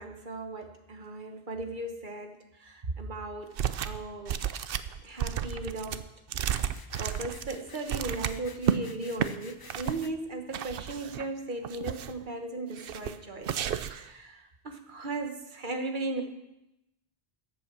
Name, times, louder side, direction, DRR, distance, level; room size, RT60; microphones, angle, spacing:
voice 1, 0.0-3.5 3.8-4.4 5.0-6.0 7.0-16.2, right 2 dB, 50° right, 5 dB, 1.4 m, -37 dB
sound 1, 3.6-4.0 4.3-8.8 9.1-9.3 9.7-10.1 10.5-11.3 11.6-12.2 12.8-13.2 13.4-14.1, right 9 dB, 65° right, 0.8 m, -32 dB
sound 2, 6.5-10.1, left 4 dB, 30° left, 0.5 m, -52 dB
14.0 x 8.2 x 6.0 m, 0.89 s
omnidirectional pair, 1.0 m